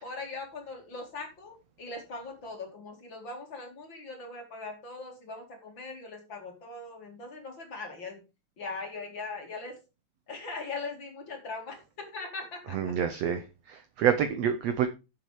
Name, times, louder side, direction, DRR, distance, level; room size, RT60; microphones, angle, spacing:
voice 1, 0.0-8.2 8.6-9.7 10.3-11.8 12.1-12.9, left 3 dB, 35° left, 3 dB, 2.5 m, -40 dB
voice 2, 12.7-14.9, right 8 dB, 85° right, 9 dB, 1.4 m, -27 dB
9.4 x 7.3 x 4.9 m, 0.29 s
omnidirectional pair, 4.2 m